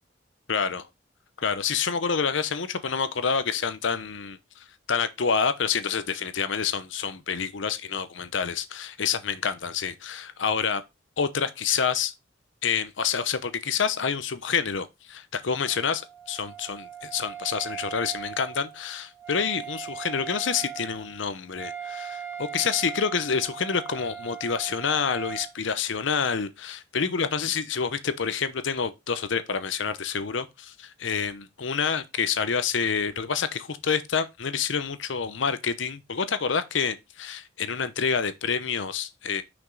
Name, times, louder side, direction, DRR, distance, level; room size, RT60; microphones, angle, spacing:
voice 1, 0.5-0.9 1.4-10.8 11.2-12.1 12.6-39.4, left 6 dB, 75° left, 0.8 m, -28 dB
Wind instrument woodwind instrument, 15.5-25.5, right 9 dB, 15° right, 1.6 m, -39 dB
6.1 x 5.2 x 3.9 m
head